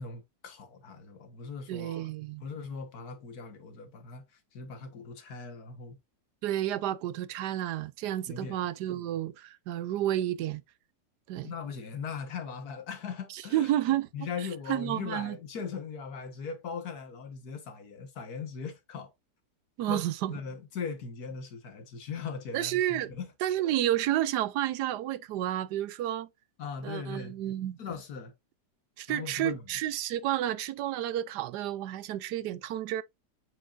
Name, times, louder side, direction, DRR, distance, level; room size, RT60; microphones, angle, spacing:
voice 1, 0.0-2.1 2.4-4.2 4.5-6.0 8.3-8.7 11.4-19.1 19.9-20.0 20.3-23.3 26.6-27.3 27.8-28.3 29.1-29.7, left 5 dB, 70° left, 1.8 m, -39 dB
voice 2, 1.7-2.4 6.4-10.6 11.3-11.5 13.3-14.1 14.7-15.4 19.8-20.4 22.5-23.1 23.4-26.3 26.8-27.8 29.0-33.0, right 13 dB, 90° right, 1.2 m, -31 dB
8.3 x 4.9 x 2.5 m
omnidirectional pair, 1.8 m